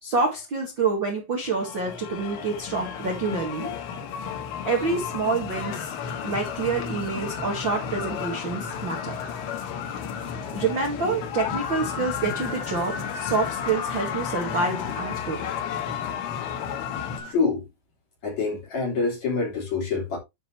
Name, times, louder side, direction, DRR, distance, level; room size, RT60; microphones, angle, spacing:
voice 1, 0.0-3.7 4.6-5.9 6.2-9.1 10.5-15.5, right 4 dB, 60° right, 1.2 m, -27 dB
sound 1, 1.5-17.2, left 7 dB, 85° left, 4.2 m, -33 dB
sound 2, 5.5-17.3, left 7 dB, 70° left, 1.6 m, -38 dB
voice 2, 17.3-17.7 18.2-20.2, left 4 dB, 40° left, 4.0 m, -26 dB
12.0 x 5.0 x 3.2 m
omnidirectional pair, 5.5 m